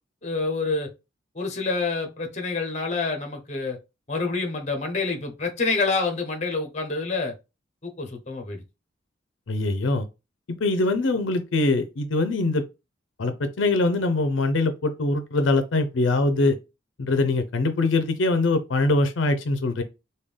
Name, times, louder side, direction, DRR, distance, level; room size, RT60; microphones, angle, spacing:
voice 1, 0.2-0.9 1.3-3.8 4.1-7.3 7.8-8.6, left 3 dB, 35° left, 0.7 m, -27 dB
voice 2, 9.5-10.1 10.6-12.6 13.2-16.6 17.0-19.8, left 2 dB, 85° left, 0.5 m, -23 dB
3.6 x 2.2 x 3.2 m
head